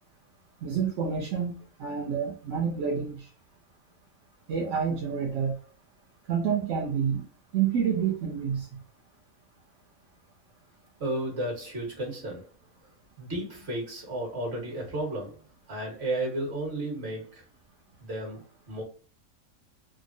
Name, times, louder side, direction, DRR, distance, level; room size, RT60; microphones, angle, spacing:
voice 1, 0.6-1.5 1.8-3.3 4.5-5.5 6.3-7.2 7.5-8.7, right 7 dB, 65° right, 0.8 m, -28 dB
voice 2, 11.0-12.5 13.2-15.4 15.7-17.4 18.0-18.8, right 1 dB, 50° right, 1.4 m, -33 dB
3.5 x 2.0 x 2.5 m
omnidirectional pair, 1.5 m